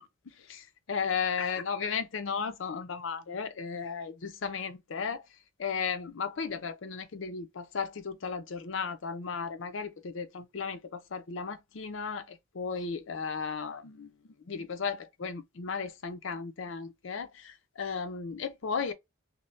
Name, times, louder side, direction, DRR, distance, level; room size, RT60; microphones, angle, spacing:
voice 1, 0.0-5.2 5.6-18.9, left 5 dB, 70° left, 0.5 m, -35 dB
2.6 x 2.1 x 3.1 m
head